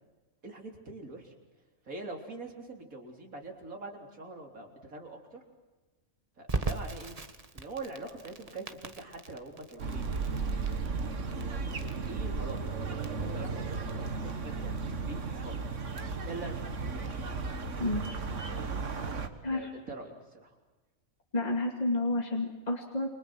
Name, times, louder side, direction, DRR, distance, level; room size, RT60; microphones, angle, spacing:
voice 1, 0.4-1.3 1.8-5.4 6.4-7.2 7.5-10.1 10.9-15.6 16.2-16.7 19.5-20.6, right 3 dB, 80° right, 2 dB, 4.2 m, -44 dB
Crackle, 6.5-17.2, right 3 dB, 25° right, 1.5 m, -41 dB
sound 1, 9.8-19.3, right 4 dB, 60° right, 1.9 m, -35 dB
voice 2, 21.3-23.1, left 2 dB, 30° left, 1 dB, 2.6 m, -30 dB
29.5 x 25.0 x 6.1 m, 1.2 s
omnidirectional pair, 1.4 m